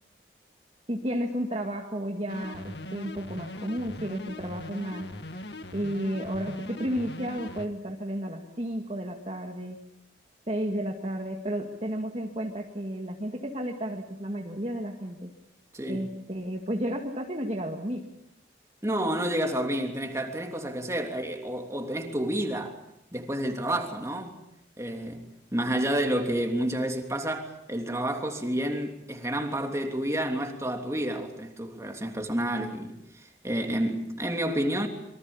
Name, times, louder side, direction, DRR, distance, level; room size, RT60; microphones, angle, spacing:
voice 1, 0.9-5.1 5.7-9.8 10.5-15.3 15.9-18.1, equal, 35° right, 2.0 m, -32 dB
sound 1, 2.3-7.7, left 1 dB, 70° left, 2.0 m, -40 dB
voice 2, 15.7-16.1 18.8-22.8 23.1-24.4 24.8-25.2 25.5-34.9, right 1 dB, 15° right, 3.1 m, -30 dB
27.0 x 24.0 x 7.3 m
head